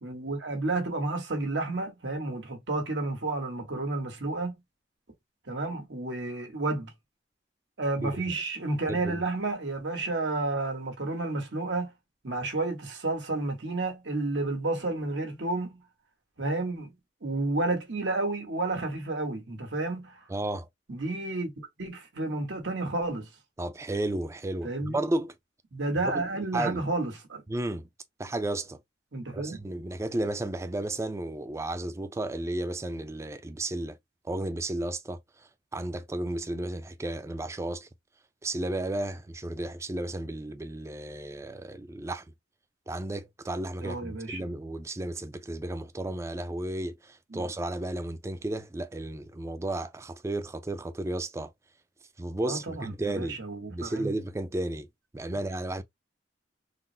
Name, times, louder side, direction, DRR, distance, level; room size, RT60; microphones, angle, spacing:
voice 1, 0.0-4.5 5.5-6.9 7.8-11.9 12.2-15.8 16.4-16.9 17.2-20.1 20.9-23.3 24.6-25.0 25.7-27.4 29.1-29.6 43.8-44.4 47.3-47.4 52.4-54.1, right 2 dB, 85° right, 1.2 m, -31 dB
voice 2, 8.9-9.2 20.3-20.7 23.6-25.3 26.0-26.2 26.5-26.8 27.5-27.9 28.2-28.8 29.3-34.0 34.2-35.2 35.7-37.9 38.4-42.2 42.9-51.5 52.2-53.4 53.7-54.9 55.1-55.8, right 1 dB, 15° right, 0.3 m, -33 dB
3.7 x 2.0 x 2.7 m
head